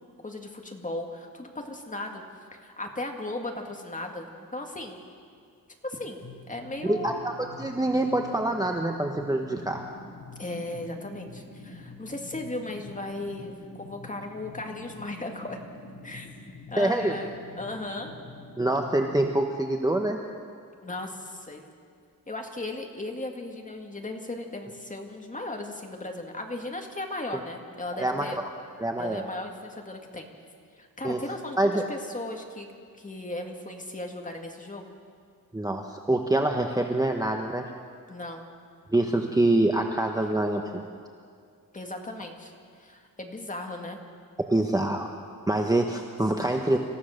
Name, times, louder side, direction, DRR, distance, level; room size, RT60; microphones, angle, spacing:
voice 1, 0.2-2.2 2.6-5.0 5.8-7.3 10.4-15.6 16.0-16.3 16.7-18.1 20.8-21.7 22.3-28.4 29.0-30.3 30.8-32.7 33.0-34.9 38.1-38.4 41.7-42.5 42.8-44.0, left 2 dB, 20° left, 2 dB, 2.0 m, -36 dB
sound 1, 6.2-19.2, left 2 dB, 70° left, 2.8 m, -46 dB
voice 2, 6.9-7.3 7.6-9.8 16.8-17.2 18.6-20.2 28.0-28.3 28.8-29.2 31.0-31.2 31.6-31.8 35.5-37.6 38.9-40.8 44.5-45.1 45.5-46.8, right 1 dB, 10° right, 3 dB, 1.0 m, -25 dB
26.5 x 15.5 x 6.5 m, 2.2 s
wide cardioid pair, 160°, 36 cm